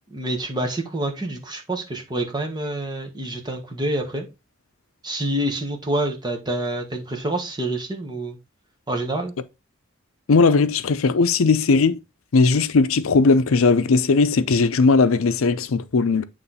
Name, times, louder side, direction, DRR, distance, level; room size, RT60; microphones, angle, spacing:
voice 1, 0.1-4.3 5.0-8.4 8.9-9.3, right 1 dB, 20° right, 1.4 m, -27 dB
voice 2, 10.3-12.0 12.3-16.2, left 4 dB, 90° left, 0.5 m, -18 dB
8.3 x 3.2 x 4.1 m
head